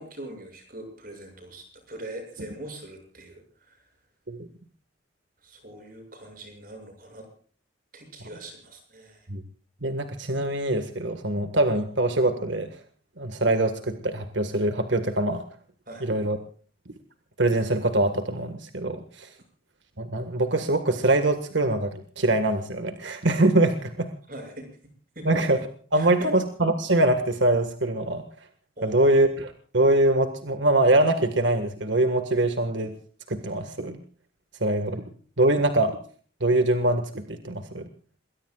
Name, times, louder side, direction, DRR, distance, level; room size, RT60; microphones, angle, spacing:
voice 1, 0.0-3.8 5.4-7.3 7.9-9.3 15.9-16.0 24.3-24.7 25.2-25.3 25.9-26.3 28.8-29.2, right 1 dB, 45° right, 5 dB, 7.1 m, -42 dB
voice 2, 9.8-12.7 13.2-15.4 16.0-16.4 17.4-19.3 20.0-24.1 25.3-25.6 25.9-28.2 28.8-32.9 33.3-34.0 34.6-35.0 35.4-36.0 36.4-37.8, right 1 dB, 70° right, 8 dB, 1.7 m, -23 dB
27.5 x 21.5 x 2.4 m, 0.42 s
head